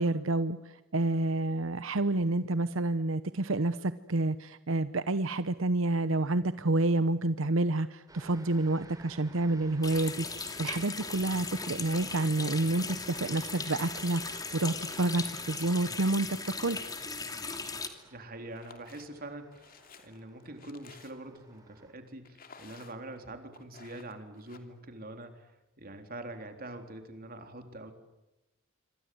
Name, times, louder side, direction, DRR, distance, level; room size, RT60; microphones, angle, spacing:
voice 1, 0.0-16.8, right 2 dB, 85° right, 13 dB, 0.9 m, -29 dB
sound 1, 8.1-21.9, right 2 dB, 20° right, 4.5 m, -56 dB
Water tap faucet, 9.8-17.9, left 4 dB, 20° left, 2.7 m, -38 dB
voice 2, 18.0-19.8 20.0-25.5 25.8-27.9, right 2 dB, 50° right, 6 dB, 3.7 m, -44 dB
sound 2, 18.5-19.1 19.5-21.4 22.3-23.2 23.5-24.6, left 5 dB, 45° left, 3.0 m, -54 dB
27.0 x 25.5 x 7.8 m, 0.98 s
head